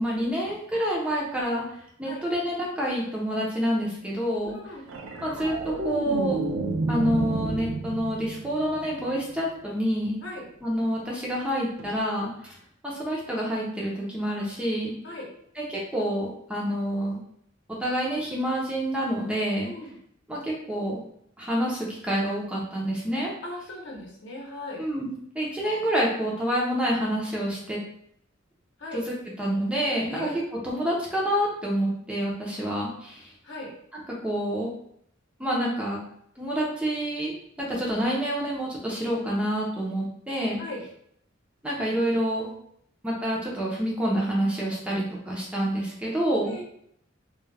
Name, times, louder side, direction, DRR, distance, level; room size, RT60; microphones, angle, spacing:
voice 1, 0.0-1.6 2.0-4.6 5.2-6.4 6.9-10.2 10.6-12.5 12.8-14.9 15.6-17.2 17.8-19.7 20.3-21.0 21.4-23.3 24.8-27.8 28.9-30.3 30.6-33.3 33.9-34.7 35.4-36.0 36.4-40.6 41.6-42.5 43.0-46.5, equal, 5° right, -4 dB, 0.5 m, -28 dB
voice 2, 4.4-4.9 10.2-10.4 15.0-15.3 19.6-19.9 23.4-24.8 28.8-29.0 30.1-30.3 33.4-33.7 40.6-40.8 46.5-46.6, left 2 dB, 65° left, -1 dB, 0.7 m, -38 dB
sound 1, 4.9-9.4 11.8-12.0, right 3 dB, 85° right, 0.4 m, -31 dB
2.3 x 2.0 x 3.2 m, 0.69 s
head